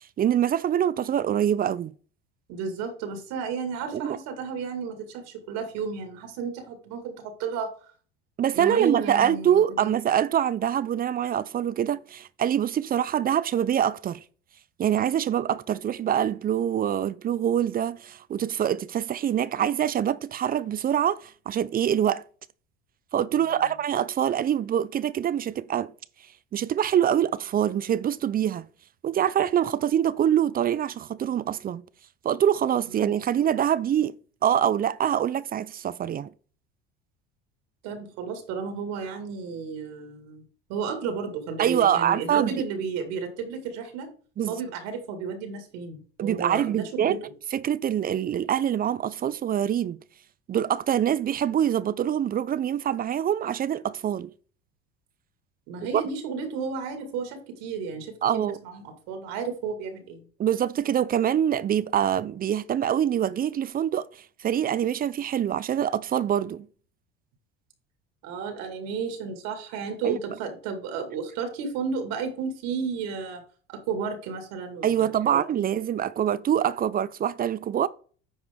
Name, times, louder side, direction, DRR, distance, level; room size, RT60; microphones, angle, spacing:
voice 1, 0.2-1.9 3.9-4.2 8.4-14.2 14.8-22.2 23.1-25.9 26.5-28.7 29.0-31.8 32.2-34.1 34.4-36.3 41.6-42.6 44.4-44.5 46.2-47.2 47.5-50.0 50.5-54.3 55.9-56.0 58.2-58.6 60.4-64.1 64.4-66.7 70.0-70.2 74.8-77.9, right 9 dB, 30° right, 0.5 m, -25 dB
voice 2, 2.5-7.7 8.5-9.9 23.3-23.6 32.9-33.1 37.8-40.4 40.7-44.1 44.5-47.2 55.7-60.2 68.2-73.4 73.7-75.6, right 5 dB, 70° right, 2.2 m, -33 dB
9.6 x 4.7 x 3.6 m
supercardioid pair, 90°, 30 cm